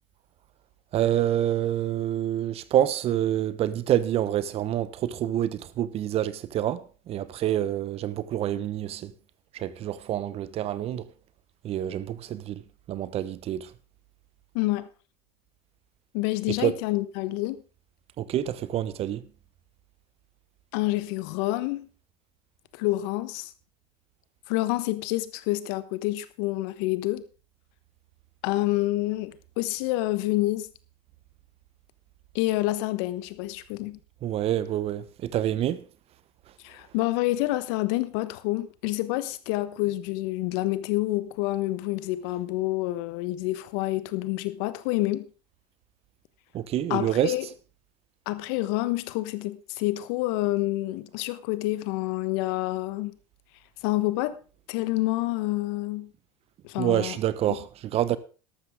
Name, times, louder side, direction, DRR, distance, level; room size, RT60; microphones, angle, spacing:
voice 1, 0.9-9.1 9.5-11.1 11.6-12.6 12.9-13.7 16.6-16.8 18.2-19.2 34.2-35.8 46.5-47.3 56.8-58.2, right 11 dB, 45° right, 1.1 m, -27 dB
voice 2, 14.5-14.9 16.1-17.6 20.7-21.9 22.7-23.5 24.5-27.2 28.4-30.7 32.3-34.0 36.6-45.3 46.9-47.5 48.3-53.2 53.8-54.4 54.7-56.1 56.6-57.2 57.5-57.6, left 18 dB, 65° left, 1.2 m, -28 dB
13.5 x 12.0 x 3.7 m
hypercardioid pair, 85°, 14 cm